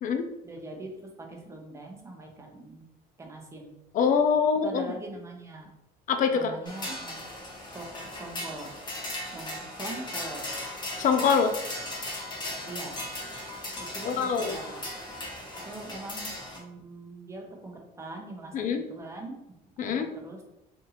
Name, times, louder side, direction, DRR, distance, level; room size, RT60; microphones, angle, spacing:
voice 1, 0.4-2.8 3.2-3.7 4.6-5.7 6.3-7.2 7.7-8.7 9.3-10.4 12.7-13.0 13.8-14.8 15.6-18.5 18.9-19.4 19.8-20.4, right 2 dB, 15° right, 1 dB, 0.7 m, -42 dB
voice 2, 3.9-4.9 6.1-6.5 11.0-11.5 14.0-14.6 18.5-18.9 19.8-20.1, left 6 dB, 50° left, 7 dB, 0.5 m, -24 dB
sound 1, 6.7-16.6, left 1 dB, 25° left, 0.9 m, -37 dB
2.8 x 2.6 x 3.9 m, 0.88 s
cardioid pair, 110°, 17 cm